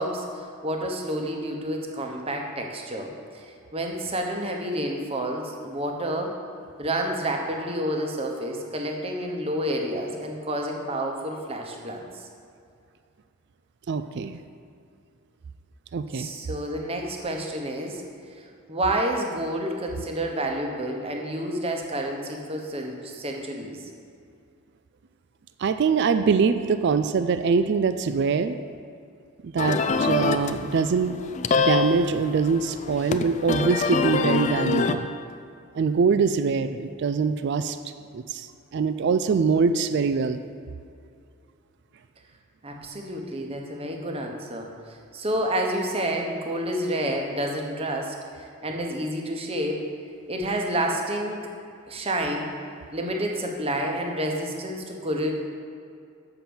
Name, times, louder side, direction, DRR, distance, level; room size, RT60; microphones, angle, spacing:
voice 1, 0.0-3.1 3.7-6.3 6.8-12.1 16.1-18.0 18.7-23.9 42.6-49.8 50.3-51.5 51.9-52.5 52.9-55.3, right 1 dB, 25° right, 1 dB, 0.9 m, -29 dB
voice 2, 13.9-14.4 15.9-16.3 25.6-28.6 29.4-31.2 31.6-35.1 35.7-37.8 38.1-38.5 38.7-40.4, right 5 dB, 50° right, 10 dB, 0.3 m, -23 dB
sound 1, 29.6-35.0, left 5 dB, 30° left, 0.3 m, -26 dB
7.6 x 5.8 x 7.0 m, 2.4 s
head